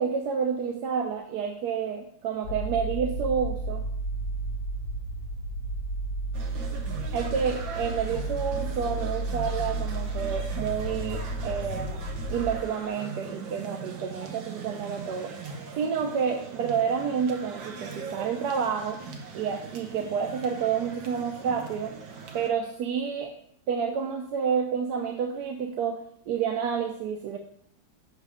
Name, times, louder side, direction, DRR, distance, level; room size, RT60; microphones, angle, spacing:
voice 1, 0.0-3.8 7.1-15.3 15.8-19.0 19.3-21.9 22.3-23.3 23.7-27.4, right 6 dB, 70° right, 4 dB, 1.1 m, -29 dB
sound 1, 2.4-12.6, right 2 dB, 65° left, 1.1 m, -32 dB
sound 2, 6.3-22.5, right 5 dB, 85° right, 1.7 m, -41 dB
6.6 x 6.5 x 4.9 m, 0.68 s
omnidirectional pair, 2.0 m